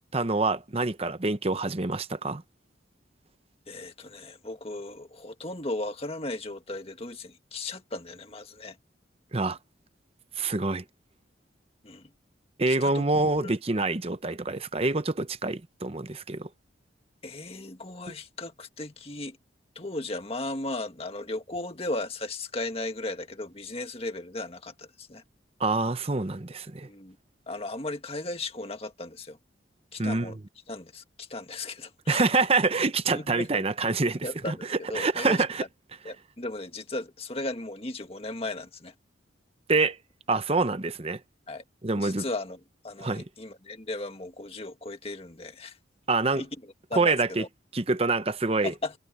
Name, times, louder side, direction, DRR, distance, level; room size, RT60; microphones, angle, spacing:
voice 1, 0.1-2.4 9.3-9.6 10.4-10.8 12.6-16.5 25.6-26.9 30.0-30.3 32.1-34.5 34.9-35.6 39.7-40.0 40.3-41.2 41.8-42.2 43.0-43.2 46.1-46.4 46.9-47.4 47.7-48.7, right 3 dB, 30° right, 0.8 m, -26 dB
voice 2, 3.7-8.8 11.8-12.1 12.7-13.1 13.4-13.5 17.2-19.4 19.8-25.2 26.8-27.2 27.5-29.4 29.9-30.4 30.7-32.3 33.1-33.7 34.2-35.4 36.0-38.9 41.5-41.6 42.0-45.8 46.3-47.5 48.6-48.9, left 2 dB, 30° left, 1.9 m, -36 dB
head